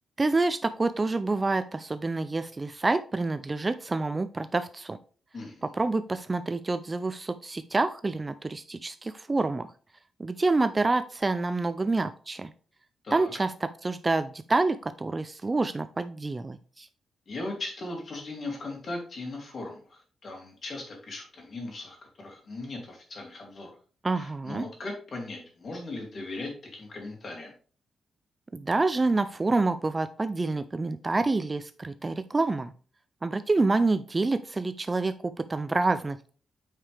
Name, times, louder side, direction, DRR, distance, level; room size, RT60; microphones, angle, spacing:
voice 1, 0.2-5.0 5.6-9.7 10.2-12.5 13.1-16.9 24.0-24.7 28.5-32.7 33.2-36.3, right 3 dB, 20° right, 11 dB, 0.3 m, -27 dB
voice 2, 17.3-23.7 24.2-27.5, left 2 dB, 45° left, 1 dB, 2.6 m, -38 dB
8.9 x 4.9 x 3.3 m, 0.40 s
wide cardioid pair, 140°, 0 cm